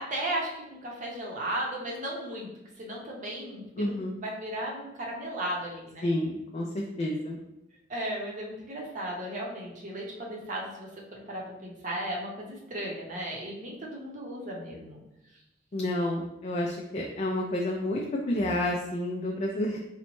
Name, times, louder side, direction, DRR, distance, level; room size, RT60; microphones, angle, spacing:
voice 1, 0.0-2.5 2.8-6.1 7.9-15.0, right 1 dB, 45° right, -3 dB, 0.7 m, -35 dB
voice 2, 3.8-4.1 6.0-7.4 15.7-18.0 18.3-19.8, left 1 dB, 35° left, -1 dB, 0.3 m, -30 dB
3.9 x 2.1 x 3.0 m, 0.90 s
head